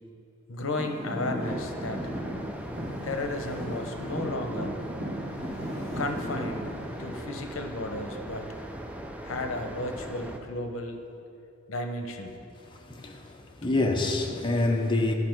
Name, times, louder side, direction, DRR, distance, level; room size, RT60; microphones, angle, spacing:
voice 1, 0.5-2.1 3.0-4.8 5.9-8.5 9.2-11.0 11.7-12.4 13.6-13.7, left 2 dB, 70° left, 4 dB, 0.8 m, -34 dB
Traffic noise roadway noise / Engine, 0.7-7.1, equal, 90° right, 1.7 m, -36 dB
sound 1, 1.4-10.4, right 1 dB, 5° right, 0.5 m, -40 dB
voice 2, 12.9-15.1, left 2 dB, 25° left, 1 dB, 0.7 m, -26 dB
11.0 x 5.5 x 4.6 m, 2.6 s
head